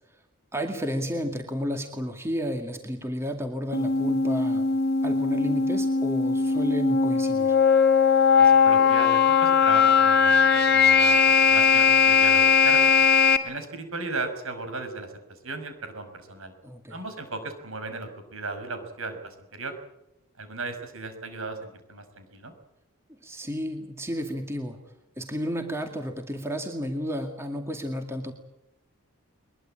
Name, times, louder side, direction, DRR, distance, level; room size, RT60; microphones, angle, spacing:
voice 1, 0.5-4.7 5.0-7.6 16.6-17.0 23.1-24.8 25.2-28.3, equal, 10° right, 4 dB, 2.3 m, -32 dB
sound 1, 3.7-13.4, left 6 dB, 45° left, 2.2 m, -19 dB
voice 2, 8.4-12.9 13.4-16.5 16.9-19.8 20.4-22.5, right 3 dB, 65° right, 8 dB, 5.7 m, -36 dB
22.5 x 22.0 x 8.8 m, 0.87 s
head